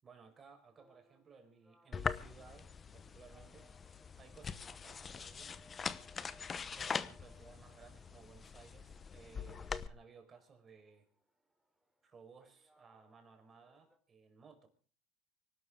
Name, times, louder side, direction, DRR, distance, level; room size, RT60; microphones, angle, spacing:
voice 1, 0.0-3.7 4.2-5.5 6.7-11.1 12.0-14.7, right 5 dB, 30° right, 5 dB, 4.9 m, -59 dB
sound 1, 0.8-14.0, equal, 5° right, 3.3 m, -69 dB
sound 2, 1.9-9.9, left 6 dB, 25° left, 0.9 m, -43 dB
25.0 x 12.0 x 3.8 m, 0.40 s
supercardioid pair, 110°, 0 cm